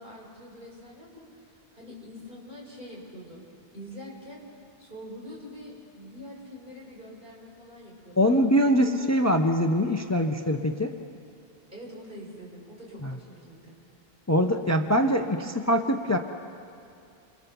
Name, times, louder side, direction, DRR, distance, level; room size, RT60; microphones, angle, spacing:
voice 1, 0.0-3.4 3.7-4.4 4.8-9.3 11.7-13.7, equal, 55° right, -4 dB, 6.6 m, -45 dB
voice 2, 8.2-10.9 13.0-13.2 14.3-16.2, equal, 15° left, 5 dB, 0.9 m, -23 dB
29.0 x 27.5 x 7.1 m, 2.5 s
omnidirectional pair, 1.0 m